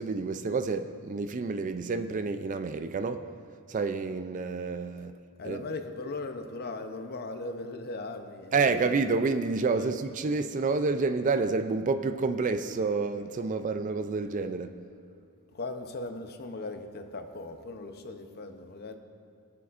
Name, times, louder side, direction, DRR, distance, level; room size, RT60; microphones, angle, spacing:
voice 1, 0.0-3.3 3.7-5.2 5.4-5.6 8.5-14.7, right 4 dB, 35° right, 0.3 m, -29 dB
voice 2, 5.4-8.9 9.7-9.9 15.5-19.0, left 2 dB, 45° left, 0.7 m, -38 dB
20.0 x 6.8 x 2.5 m
head